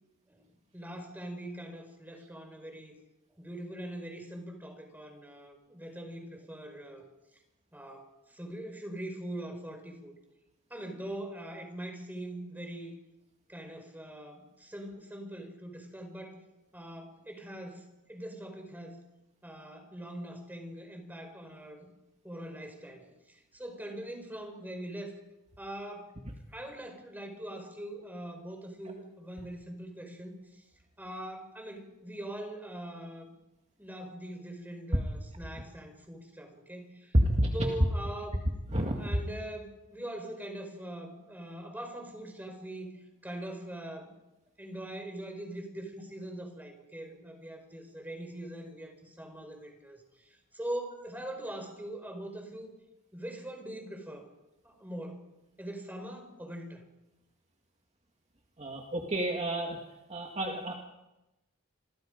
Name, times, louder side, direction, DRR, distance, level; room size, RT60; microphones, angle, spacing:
voice 1, 0.7-2.9 3.4-7.0 7.7-10.1 10.7-12.9 13.5-16.3 16.7-17.8 18.1-19.0 19.4-21.9 22.2-25.1 25.6-26.1 26.5-30.4 31.0-33.3 33.8-37.2 37.5-38.4 39.0-42.9 43.2-44.1 44.6-50.3 50.5-52.7 53.1-54.3 54.6-55.2 55.6-56.8, right 1 dB, 10° right, 4 dB, 4.9 m, -42 dB
voice 2, 38.7-39.1 58.6-59.8 60.1-60.8, right 1 dB, 35° right, 1 dB, 2.1 m, -31 dB
28.0 x 22.0 x 5.2 m, 0.98 s
head